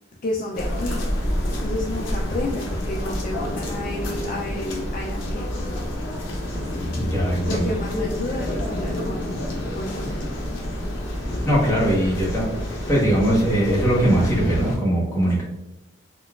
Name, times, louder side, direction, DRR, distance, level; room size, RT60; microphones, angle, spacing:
voice 1, 0.2-1.0 1.6-5.5 5.8-5.9 6.5-6.8 7.4-10.3, left 1 dB, 45° left, -1 dB, 0.3 m, -31 dB
sound 1, 0.5-14.8, left 1 dB, 80° left, 0.7 m, -28 dB
voice 2, 6.9-7.7 11.4-12.5 12.9-15.4, right 1 dB, 15° left, -6 dB, 1.0 m, -20 dB
3.7 x 2.3 x 2.3 m, 0.92 s
head